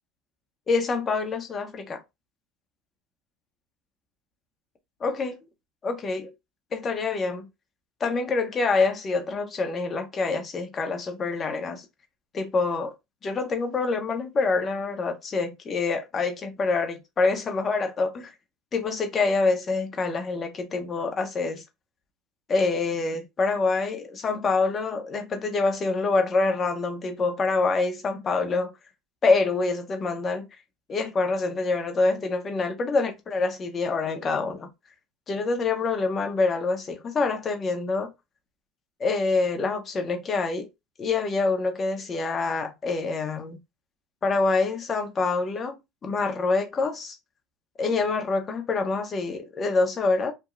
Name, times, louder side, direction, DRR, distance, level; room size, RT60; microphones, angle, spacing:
voice 1, 0.7-2.0 5.0-5.4 5.8-6.3 6.7-7.5 8.0-11.8 12.3-12.9 13.2-18.3 18.7-21.6 22.5-28.7 29.2-30.5 30.9-34.7 35.3-38.1 39.0-40.7 41.0-43.6 44.2-47.2 47.8-50.3, left 3 dB, 35° left, 0.9 m, -26 dB
3.0 x 2.2 x 2.5 m
hypercardioid pair, 75°, 0 cm